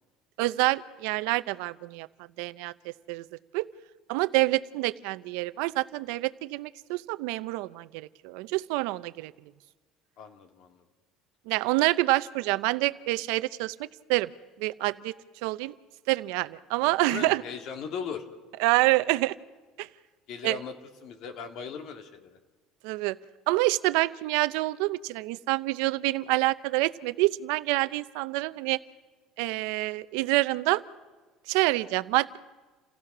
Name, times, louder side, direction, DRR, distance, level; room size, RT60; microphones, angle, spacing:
voice 1, 0.4-2.1 2.4-3.2 3.5-3.7 4.1-9.3 11.5-14.3 14.6-15.1 15.4-15.7 16.1-17.4 18.6-19.3 19.8-19.9 20.4-20.6 22.8-23.2 23.5-28.8 29.4-30.8 31.5-32.4, right 20 dB, 85° right, 15 dB, 0.7 m, -27 dB
voice 2, 10.2-10.8 17.0-18.2 20.3-20.7 21.0-22.4, left 6 dB, 55° left, 5 dB, 2.3 m, -38 dB
28.5 x 16.0 x 6.1 m, 1.3 s
cardioid pair, 145°, 0 cm